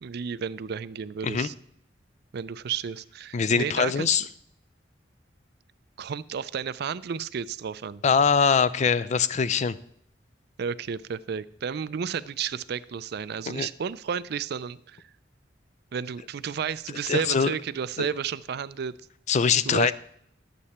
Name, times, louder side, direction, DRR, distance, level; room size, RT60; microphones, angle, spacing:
voice 1, 0.0-1.5 2.3-4.3 6.0-8.0 10.6-15.0 15.9-19.0 19.6-19.9, right 7 dB, 60° right, 15 dB, 0.4 m, -32 dB
voice 2, 3.3-4.2 8.0-9.8 13.5-13.7 17.1-17.5 18.0-18.1 19.3-19.9, left 6 dB, 40° left, 16 dB, 0.4 m, -23 dB
11.0 x 8.3 x 4.2 m, 0.69 s
head